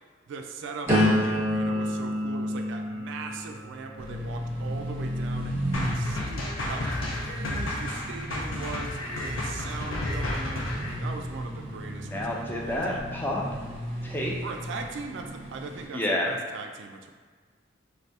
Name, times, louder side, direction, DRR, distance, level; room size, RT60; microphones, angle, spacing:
voice 1, 0.3-10.7 11.0-13.0 14.4-17.1, right 4 dB, 70° right, 4 dB, 0.3 m, -40 dB
sound 1, 0.9-6.7 7.3-7.7, equal, 15° right, 1.0 m, -29 dB
sound 2, 4.0-15.9, equal, 30° right, 0.7 m, -35 dB
sound 3, 5.7-10.9, left 1 dB, 85° left, 0.6 m, -32 dB
voice 2, 12.0-13.4 14.0-14.3 15.9-16.3, left 1 dB, 10° left, -2 dB, 0.4 m, -29 dB
3.3 x 2.6 x 2.7 m, 1.5 s
head